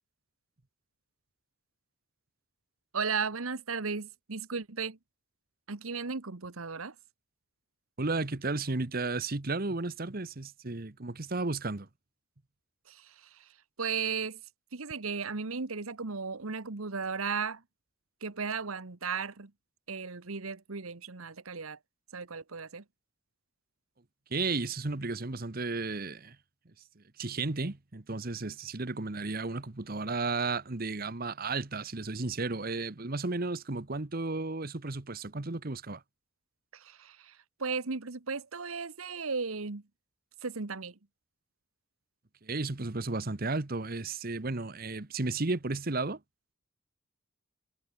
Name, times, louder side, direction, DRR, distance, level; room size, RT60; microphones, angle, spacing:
voice 1, 2.9-5.0 5.7-6.9 12.9-13.5 13.8-14.4 14.7-17.6 18.2-19.5 19.9-21.8 22.1-22.8 36.7-39.8 40.4-40.9, right 5 dB, 90° right, 1.3 m, -35 dB
voice 2, 8.0-11.9 24.3-26.4 27.0-36.0 42.4-46.2, right 3 dB, 45° right, 1.1 m, -33 dB
head